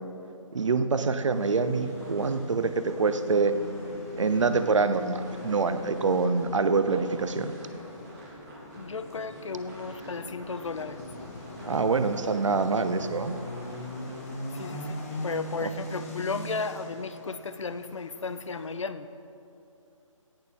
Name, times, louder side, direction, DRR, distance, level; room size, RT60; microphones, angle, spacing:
voice 1, 0.5-3.5 4.2-7.5 11.6-13.3 15.6-15.7, right 4 dB, 65° right, 10 dB, 0.8 m, -25 dB
sound 1, 1.2-14.8, right 1 dB, 30° right, 3.3 m, -52 dB
sound 2, 1.3-18.7, left 1 dB, 25° left, 1.7 m, -40 dB
voice 2, 8.8-11.0 14.5-19.1, left 4 dB, 65° left, 12 dB, 0.7 m, -34 dB
17.0 x 6.8 x 5.3 m, 2.7 s
hypercardioid pair, 170°, 17 cm